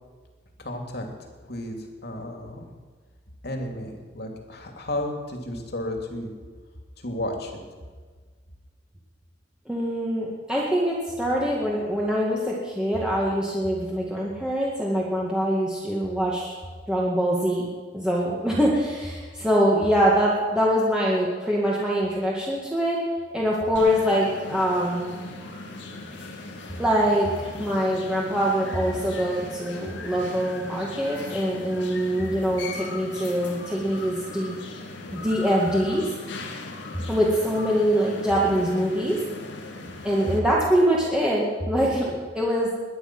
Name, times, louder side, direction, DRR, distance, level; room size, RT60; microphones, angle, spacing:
voice 1, 0.6-1.1 1.4-2.7 3.4-6.3 7.0-7.6, left 1 dB, 60° left, 2 dB, 2.7 m, -33 dB
voice 2, 9.7-16.6 16.9-17.7 17.9-23.0 23.3-25.2 26.2-26.4 26.8-27.3 27.6-34.6 35.1-36.1 37.1-39.2 40.0-42.7, equal, 5° right, -5 dB, 2.0 m, -24 dB
sound 1, 23.7-40.4, left 2 dB, 85° left, 2.2 m, -39 dB
21.5 x 10.0 x 6.1 m, 1.5 s
head